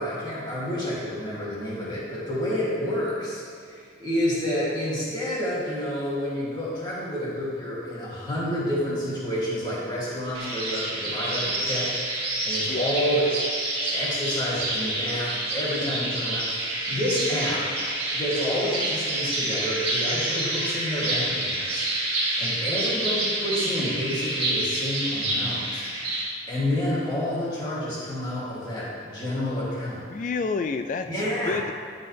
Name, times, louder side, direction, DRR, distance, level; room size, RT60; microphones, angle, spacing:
voice 1, 0.0-11.9 12.4-13.3 13.9-17.7 18.1-21.9 22.1-25.8 26.5-30.1 31.0-31.6, equal, 25° left, -8 dB, 2.7 m, -29 dB
sound 1, 10.3-26.2, right 1 dB, 30° right, 2.2 m, -28 dB
voice 2, 30.1-31.7, left 4 dB, 45° left, 8 dB, 0.3 m, -29 dB
13.0 x 7.5 x 3.4 m, 2.2 s
head